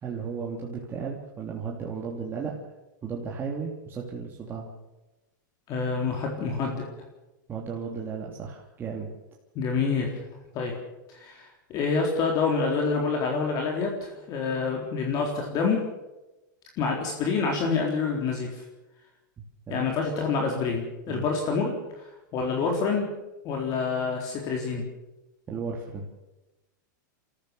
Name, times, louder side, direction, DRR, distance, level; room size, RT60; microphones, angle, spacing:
voice 1, 0.0-2.5 3.0-4.7 7.5-9.1 19.7-19.8 21.1-21.2 25.5-26.0, right 5 dB, 20° right, -3 dB, 3.0 m, -34 dB
voice 2, 5.7-6.9 9.6-10.1 10.5-10.7 11.1-15.8 16.8-18.6 19.7-22.0 22.3-23.1 23.4-24.8, left 4 dB, 35° left, 1 dB, 4.0 m, -27 dB
27.0 x 14.5 x 7.0 m, 1.0 s
supercardioid pair, 135°, 11 cm